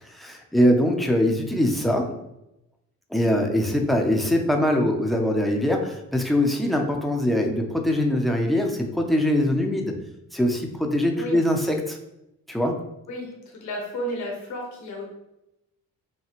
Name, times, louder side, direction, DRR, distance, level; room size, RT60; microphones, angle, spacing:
voice 1, 0.1-2.2 3.1-9.9 10.3-12.0 12.5-12.8, left 1 dB, ahead, 1 dB, 0.6 m, -22 dB
voice 2, 13.6-15.1, equal, 75° left, -1 dB, 1.2 m, -32 dB
5.7 x 2.3 x 2.9 m, 0.87 s
cardioid pair, 90°, 30 cm